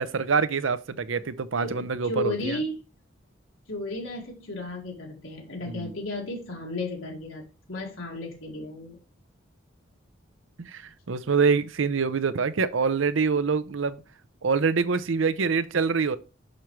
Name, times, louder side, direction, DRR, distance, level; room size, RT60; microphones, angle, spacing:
voice 1, 0.0-2.6 5.7-5.9 10.6-14.0 14.4-16.2, right 5 dB, 80° right, 0.6 m, -25 dB
voice 2, 1.6-2.8 3.7-9.0, left 2 dB, 90° left, 2.1 m, -34 dB
6.4 x 5.8 x 3.1 m
head